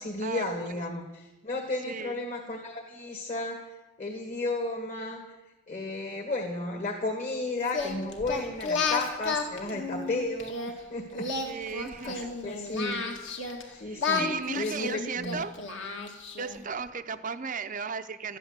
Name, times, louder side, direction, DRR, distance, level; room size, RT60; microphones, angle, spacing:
voice 1, 0.0-3.7 4.0-5.2 5.7-11.3 11.5-13.0 13.7-14.3 14.5-15.4, left 2 dB, 40° left, -1 dB, 1.9 m, -33 dB
voice 2, 1.8-2.2 11.4-12.3 13.8-15.5 16.4-18.4, right 5 dB, 35° right, 9 dB, 0.6 m, -35 dB
Singing, 7.7-10.7 11.1-13.6 14.0-16.6, left 4 dB, 55° left, 2.1 m, -32 dB
13.5 x 10.5 x 8.1 m, 1.1 s
head